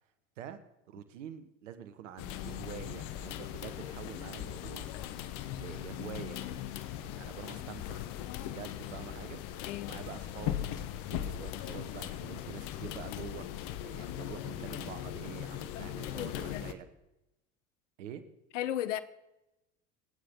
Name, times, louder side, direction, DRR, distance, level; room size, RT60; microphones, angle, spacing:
voice 1, 0.9-4.9 5.5-6.4 7.0-8.1 8.5-13.5 13.8-16.9 18.0-18.2, right 9 dB, 85° right, 1.5 m, -46 dB
sound 1, 2.2-16.7, left 12 dB, 65° left, 1.1 m, -39 dB
voice 2, 15.8-16.7 18.5-19.0, left 12 dB, 85° left, 0.9 m, -36 dB
25.5 x 8.9 x 3.8 m
hypercardioid pair, 75°, 36 cm